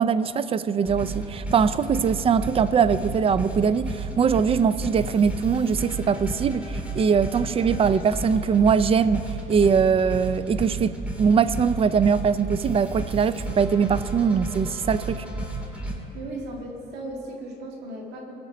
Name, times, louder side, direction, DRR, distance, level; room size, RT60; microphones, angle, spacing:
voice 1, 0.0-15.2, right 6 dB, 35° right, 15 dB, 0.4 m, -22 dB
sound 1, 0.8-15.9, right 2 dB, 10° right, 2.4 m, -33 dB
voice 2, 16.1-18.3, right 1 dB, 80° right, 0 dB, 2.0 m, -36 dB
20.0 x 7.0 x 5.1 m, 2.8 s
cardioid pair, 110°, 17 cm